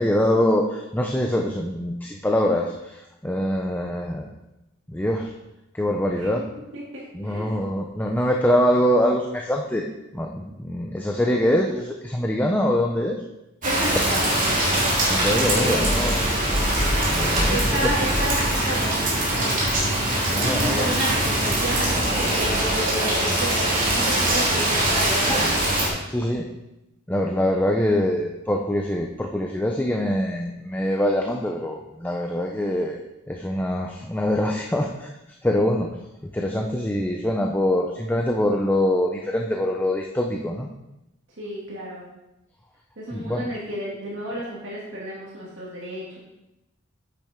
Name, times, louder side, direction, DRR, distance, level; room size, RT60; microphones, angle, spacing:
voice 1, 0.0-4.2 4.9-5.3 5.7-6.4 7.1-9.9 10.1-13.2 15.1-16.3 17.1-17.9 20.3-20.9 25.4-25.5 26.1-26.5 27.1-33.0 33.3-35.1 35.4-35.9 36.2-40.7 43.1-43.4, left 1 dB, 10° left, 1 dB, 0.6 m, -24 dB
voice 2, 6.5-7.6 13.6-14.6 15.5-15.8 17.2-19.0 19.4-19.7 20.4-25.5 41.4-42.0 43.0-46.2, right 1 dB, 70° right, -6 dB, 2.4 m, -31 dB
Rain, 13.6-25.9, right 1 dB, 45° right, 2.9 m, -22 dB
8.6 x 8.5 x 3.6 m, 0.93 s
head